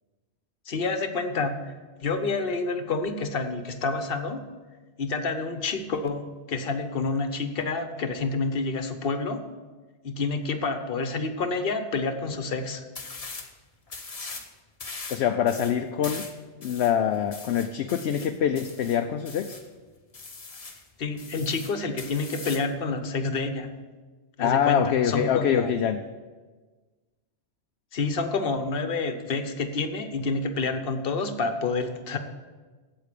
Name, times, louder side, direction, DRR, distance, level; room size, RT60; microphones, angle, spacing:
voice 1, 0.7-1.7 2.0-4.5 5.0-9.4 10.0-12.9 21.0-23.7 24.4-25.7 27.9-32.2, left 3 dB, 55° left, 8 dB, 1.1 m, -28 dB
sound 1, 12.9-13.5 13.9-14.5 14.8-19.7 20.1-20.8 21.2-22.7, left 3 dB, 35° left, 1.1 m, -40 dB
voice 2, 15.1-16.3 16.6-19.6 24.4-26.0, left 9 dB, 70° left, 7 dB, 0.8 m, -25 dB
8.4 x 8.2 x 8.3 m, 1.3 s
omnidirectional pair, 1.2 m